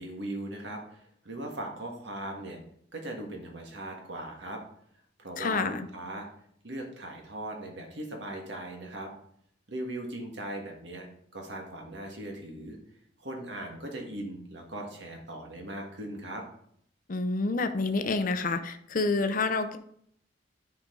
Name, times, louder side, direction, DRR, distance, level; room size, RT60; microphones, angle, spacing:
voice 1, 0.0-2.6 2.9-4.6 5.2-6.3 6.6-9.1 9.7-11.1 11.3-12.8 13.2-16.4, right 1 dB, 70° right, 2 dB, 1.8 m, -39 dB
voice 2, 5.4-5.9 17.1-19.8, left 3 dB, 45° left, 8 dB, 0.6 m, -28 dB
10.0 x 5.1 x 3.8 m, 0.67 s
head